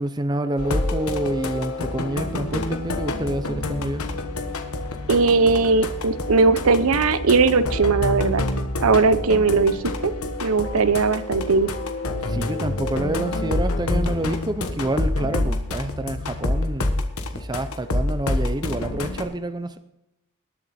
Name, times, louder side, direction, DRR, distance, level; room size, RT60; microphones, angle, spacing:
voice 1, 0.0-4.0 12.2-17.0 17.3-19.8, right 1 dB, 20° right, 10 dB, 0.5 m, -28 dB
sound 1, 0.6-19.2, left 2 dB, 75° left, 1.3 m, -27 dB
voice 2, 5.1-8.5 8.8-10.1 10.4-11.7, right 4 dB, 70° right, 13 dB, 0.7 m, -19 dB
19.5 x 7.1 x 4.3 m, 0.87 s
head